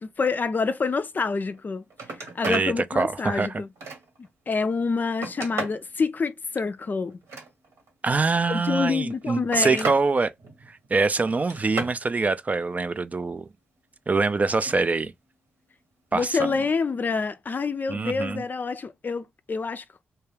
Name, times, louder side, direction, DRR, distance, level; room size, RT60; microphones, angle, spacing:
voice 1, 0.0-1.8 2.4-3.7 4.5-7.2 8.5-9.9 16.1-19.8, left 4 dB, 40° left, 0.4 m, -27 dB
Telephone, 1.5-1.6 1.9-2.7 3.2-4.3 4.8-5.9 7.1-7.9 8.9-10.0 10.4-10.9 11.3-12.0 14.5-14.8 16.2-16.3, right 3 dB, 75° right, 1.0 m, -35 dB
voice 2, 2.5-3.6 8.0-10.3 10.7-13.4 14.1-15.1 16.1-16.5 17.9-18.4, right 3 dB, 35° right, 0.3 m, -24 dB
2.3 x 2.1 x 3.2 m
supercardioid pair, 45°, 5 cm